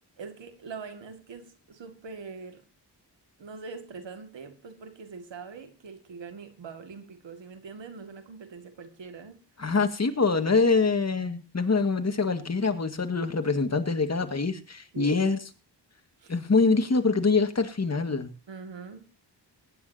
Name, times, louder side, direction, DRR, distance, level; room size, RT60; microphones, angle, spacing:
voice 1, 0.2-2.6 3.4-9.4 14.9-15.2 16.2-16.3 18.5-19.1, right 5 dB, 90° right, 7 dB, 2.2 m, -43 dB
voice 2, 9.6-15.4 16.3-18.3, left 4 dB, 35° left, 7 dB, 1.9 m, -24 dB
22.5 x 9.9 x 2.8 m, 0.35 s
wide cardioid pair, 80°, 43 cm